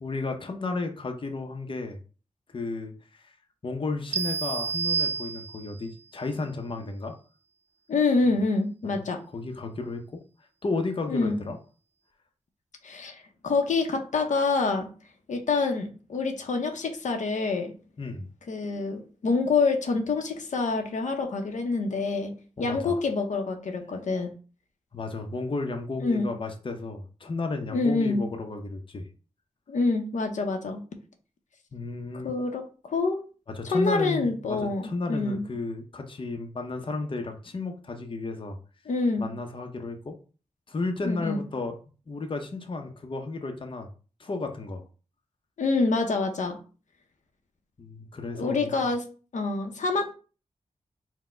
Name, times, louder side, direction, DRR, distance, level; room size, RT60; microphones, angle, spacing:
voice 1, 0.0-2.0 2.5-3.3 3.6-7.2 9.3-10.2 10.6-11.6 18.0-18.3 22.6-23.0 24.9-29.1 31.7-32.3 33.5-38.6 39.2-40.2 40.7-41.7 42.1-43.9 44.2-44.8 47.8-48.9, left 3 dB, 45° left, 4 dB, 0.7 m, -33 dB
sound 1, 4.1-5.9, right 6 dB, 70° right, 0.4 m, -29 dB
voice 2, 7.9-9.2 11.1-11.4 12.8-14.9 15.3-17.7 18.5-22.3 22.6-24.3 26.0-26.3 27.7-28.2 29.7-30.8 32.2-33.2 33.6-35.4 38.9-39.3 41.0-41.4 45.6-46.6 48.3-49.0 49.3-50.1, left 3 dB, 85° left, 4 dB, 0.7 m, -26 dB
4.2 x 2.1 x 4.3 m, 0.36 s
wide cardioid pair, 80°, 12 cm